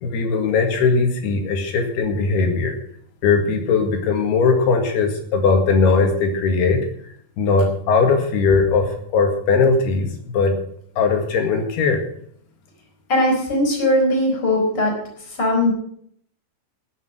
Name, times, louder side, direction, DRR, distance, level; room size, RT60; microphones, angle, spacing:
voice 1, 0.0-2.8 3.2-6.8 7.4-10.5 11.0-12.0, left 4 dB, 90° left, 4 dB, 4.0 m, -19 dB
voice 2, 13.1-15.0 15.3-15.7, left 1 dB, 25° left, 0 dB, 4.6 m, -19 dB
19.5 x 6.7 x 6.1 m, 0.64 s
omnidirectional pair, 4.5 m